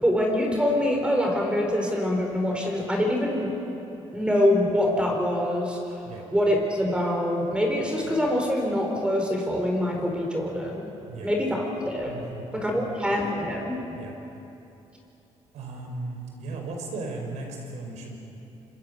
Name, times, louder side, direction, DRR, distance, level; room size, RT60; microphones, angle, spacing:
voice 1, 0.0-3.5 4.1-5.8 6.3-10.9 11.2-12.1 12.5-13.8, left 1 dB, 10° right, 1 dB, 4.5 m, -25 dB
voice 2, 12.0-12.9 13.9-14.1 15.5-18.2, right 3 dB, 85° right, 2 dB, 5.6 m, -36 dB
27.0 x 24.5 x 7.1 m, 2.9 s
cardioid pair, 110°, 12 cm